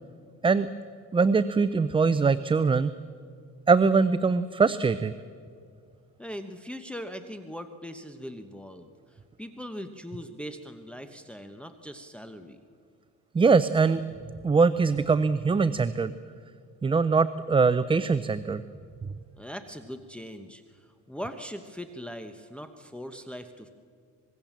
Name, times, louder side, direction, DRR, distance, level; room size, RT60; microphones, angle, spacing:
voice 1, 1.1-2.9 3.7-5.1 13.3-14.0 14.4-16.1 16.8-18.6, right 4 dB, 15° right, 14 dB, 0.5 m, -22 dB
voice 2, 6.2-8.9 9.4-12.6 19.4-23.7, equal, 5° left, 6 dB, 1.1 m, -40 dB
25.5 x 21.0 x 7.4 m, 2.2 s
cardioid pair, 130°, 31 cm